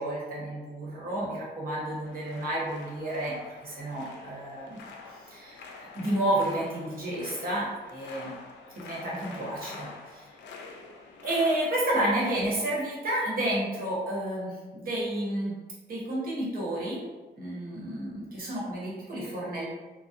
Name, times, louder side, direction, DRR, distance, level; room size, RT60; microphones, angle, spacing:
voice 1, 0.0-4.8 5.1-8.4 8.8-10.4 11.2-15.5 15.9-17.0 17.4-19.7, right 1 dB, 55° right, -6 dB, 1.0 m, -31 dB
sound 1, 2.0-11.6, left 4 dB, 85° left, 0.4 m, -46 dB
2.3 x 2.1 x 2.8 m, 1.2 s
cardioid pair, 105°, 18 cm